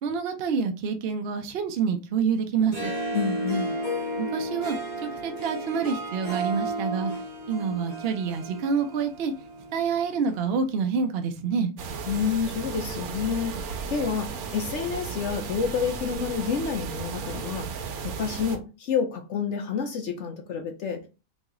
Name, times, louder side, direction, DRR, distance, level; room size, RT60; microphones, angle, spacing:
voice 1, 0.0-2.9 4.2-4.8 5.0-7.1 7.5-9.3 9.7-11.7, right 6 dB, 65° right, 0.6 m, -27 dB
Harp, 2.6-10.0, right 1 dB, 25° right, 1.8 m, -33 dB
voice 2, 3.1-3.7 12.1-17.7 18.0-21.1, left 6 dB, 65° left, 0.8 m, -29 dB
sound 1, 11.8-18.6, right 5 dB, 85° right, 1.1 m, -35 dB
3.1 x 2.8 x 3.6 m
omnidirectional pair, 1.5 m